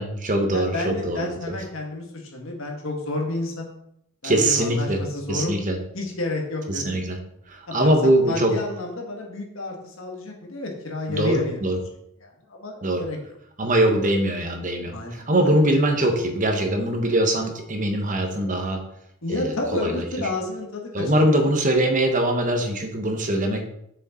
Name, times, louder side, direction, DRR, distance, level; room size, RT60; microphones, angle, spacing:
voice 1, 0.0-1.5 4.2-5.8 6.7-7.2 7.5-8.5 11.1-11.8 12.8-13.0 13.6-18.8 19.3-20.0 20.9-23.6, right 1 dB, 35° right, 4 dB, 1.2 m, -22 dB
voice 2, 0.5-3.7 4.2-5.6 5.9-7.0 7.7-11.6 12.2-13.2 14.9-15.6 19.2-21.1, left 2 dB, 65° left, 0 dB, 1.9 m, -30 dB
6.5 x 6.5 x 4.4 m, 0.75 s
head